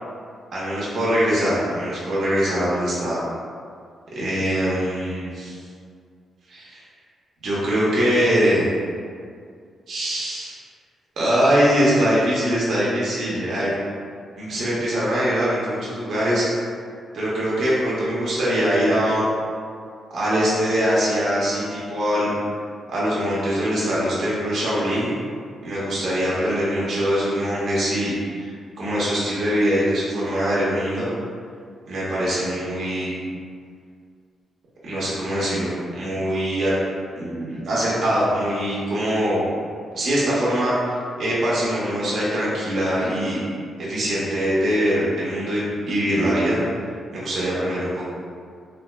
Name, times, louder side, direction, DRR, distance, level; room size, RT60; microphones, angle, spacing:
voice 1, 0.5-3.2 4.1-5.6 6.5-6.8 7.4-8.7 9.9-10.6 11.2-13.8 14.4-16.5 17.1-19.2 20.1-22.3 22.9-25.1 25.6-31.1 31.9-33.1 34.8-36.7 37.2-39.4 39.9-40.7 41.2-43.4 43.8-46.6 47.1-48.0, equal, 60° right, -8 dB, 0.8 m, -22 dB
3.4 x 3.1 x 2.2 m, 2.2 s
cardioid pair, 115°, 0 cm